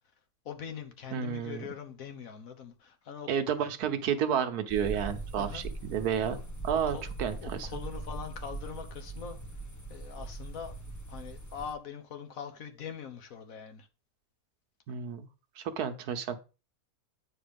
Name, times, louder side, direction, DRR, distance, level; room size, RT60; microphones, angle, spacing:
voice 1, 0.4-3.7 5.4-5.6 6.3-6.4 6.9-7.0 7.3-9.4 9.9-10.7 11.1-13.9, left 7 dB, 65° left, 1.6 m, -42 dB
voice 2, 1.1-1.7 3.3-6.4 6.6-7.7 14.9-15.3 15.6-16.4, right 8 dB, 90° right, 1.4 m, -31 dB
sound 1, 4.7-11.7, right 2 dB, 15° left, 0.6 m, -41 dB
8.7 x 4.7 x 5.2 m
omnidirectional pair, 1.6 m